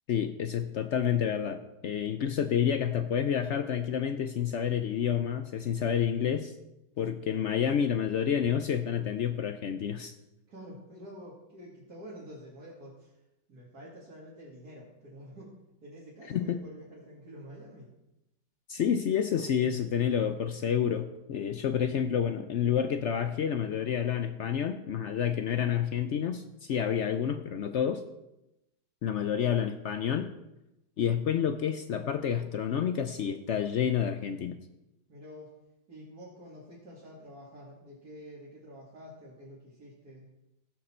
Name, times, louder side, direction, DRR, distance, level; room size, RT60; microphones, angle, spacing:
voice 1, 0.1-6.5 7.0-10.1 16.3-16.6 18.7-28.0 29.0-30.3 31.0-34.6, left 8 dB, 70° left, 9 dB, 0.7 m, -29 dB
voice 2, 10.5-15.5 15.8-17.9 35.1-35.5 35.9-40.2, equal, 65° right, -7 dB, 2.7 m, -48 dB
16.5 x 6.7 x 4.3 m, 0.93 s
omnidirectional pair, 1.8 m